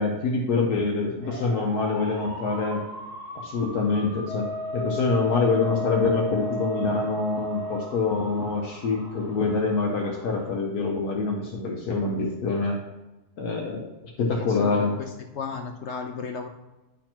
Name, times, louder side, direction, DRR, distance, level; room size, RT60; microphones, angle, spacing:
voice 1, 0.0-2.8 3.3-12.8 13.4-13.9 14.2-14.9, left 4 dB, 75° left, -1 dB, 1.5 m, -25 dB
sound 1, 1.2-10.5, right 1 dB, 55° right, 2.4 m, -42 dB
Wind instrument woodwind instrument, 4.3-7.9, equal, 30° left, 0.8 m, -32 dB
voice 2, 14.2-16.5, left 5 dB, 60° left, 5 dB, 0.7 m, -34 dB
10.5 x 3.9 x 4.4 m, 1.0 s
omnidirectional pair, 1.7 m